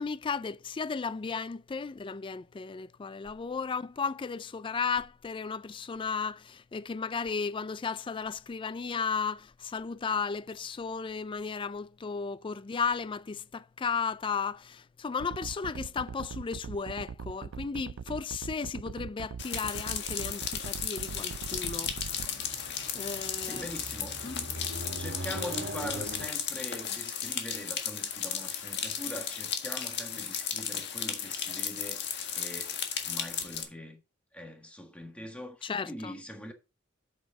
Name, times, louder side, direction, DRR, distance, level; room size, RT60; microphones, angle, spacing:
voice 1, 0.0-21.9 22.4-22.5 22.9-23.7 24.2-24.5 35.6-36.1, left 5 dB, 25° left, 0.3 m, -34 dB
sound 1, 15.2-22.3, right 6 dB, 85° right, 0.4 m, -41 dB
sound 2, 19.4-33.6, left 8 dB, 55° left, 1.7 m, -35 dB
sound 3, 21.2-26.3, right 1 dB, 65° right, 2.0 m, -41 dB
voice 2, 23.4-24.2 25.0-32.0 32.3-34.0 34.3-36.5, equal, 5° left, 1.6 m, -42 dB
8.3 x 7.2 x 3.7 m
head